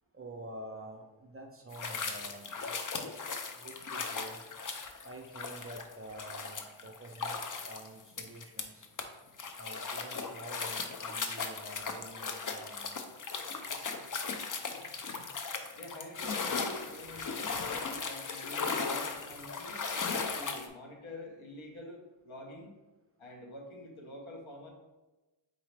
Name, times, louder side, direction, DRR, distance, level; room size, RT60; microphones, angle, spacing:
voice 1, 0.1-3.2 3.6-4.4 5.0-8.9 9.6-12.9, right 1 dB, 30° right, 2 dB, 0.5 m, -48 dB
sound 1, 1.7-9.0 9.4-20.7, left 4 dB, 40° left, 0.5 m, -37 dB
voice 2, 15.7-19.9 20.3-22.7 23.2-24.7, left 1 dB, 70° left, 1 dB, 1.0 m, -47 dB
3.9 x 3.9 x 3.3 m, 1.1 s
wide cardioid pair, 85°, 49 cm